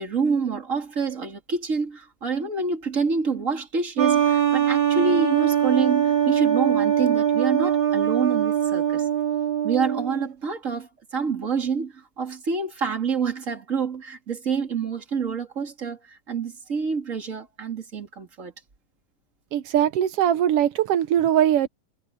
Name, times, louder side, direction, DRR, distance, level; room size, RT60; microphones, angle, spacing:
voice 1, 0.0-9.1 9.6-18.5, right 5 dB, 25° right, 2.8 m, -27 dB
sound 1, 4.0-10.3, right 9 dB, 60° right, 6.9 m, -22 dB
voice 2, 19.5-21.7, right 10 dB, 90° right, 1.3 m, -21 dB
omnidirectional pair, 3.8 m